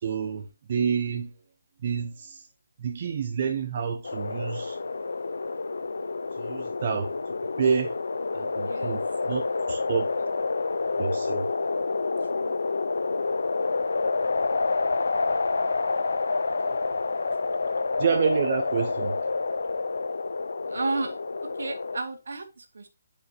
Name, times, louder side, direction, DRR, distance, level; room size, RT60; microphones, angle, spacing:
voice 1, 0.0-1.3 1.8-2.5 2.8-4.8 6.4-7.2 7.6-7.9 8.3-10.1 11.0-11.5 18.0-19.2, right 6 dB, 45° right, 0.7 m, -28 dB
sound 1, 4.0-22.0, left 3 dB, 80° left, 0.7 m, -28 dB
voice 2, 8.7-9.0 12.3-12.5 20.7-21.2 21.6-22.9, right 3 dB, 75° right, 1.7 m, -32 dB
10.5 x 5.1 x 2.9 m
hypercardioid pair, 155°, 0 cm